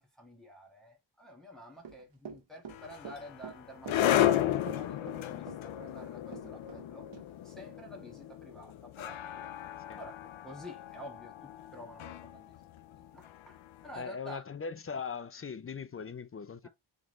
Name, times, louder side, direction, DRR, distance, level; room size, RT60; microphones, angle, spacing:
voice 1, 0.0-7.1 7.4-11.3 11.7-14.4 16.6-16.7, equal, ahead, 1.5 m, -50 dB
Run / Walk footsteps, 1.8-6.9 7.1-7.2, right 7 dB, 70° right, 1.3 m, -46 dB
sound 1, 2.7-13.8, left 12 dB, 85° left, 0.6 m, -34 dB
voice 2, 14.0-16.7, left 5 dB, 30° left, 0.5 m, -40 dB
3.7 x 3.6 x 3.0 m
cardioid pair, 70°, 46 cm